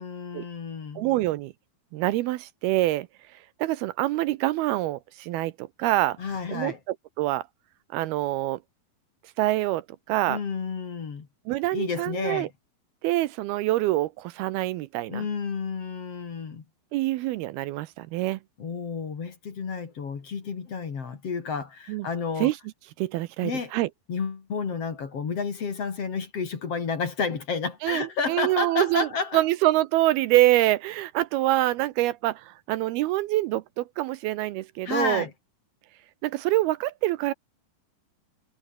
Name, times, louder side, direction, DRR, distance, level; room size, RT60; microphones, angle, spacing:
voice 1, 0.0-1.0 6.2-6.8 10.3-11.3 11.7-12.5 15.1-16.6 18.6-22.5 23.4-23.7 24.1-29.4 34.8-35.3, left 5 dB, 40° left, 3.2 m, -31 dB
voice 2, 1.0-1.5 1.9-3.1 3.6-6.2 6.5-7.5 7.9-8.6 9.4-9.8 10.1-10.4 11.5-12.5 13.0-15.3 16.9-18.4 21.9-22.1 22.4-22.6 23.0-23.9 27.8-29.1 29.3-35.3 36.2-37.3, right 16 dB, 80° right, 2.5 m, -25 dB
omnidirectional pair, 4.7 m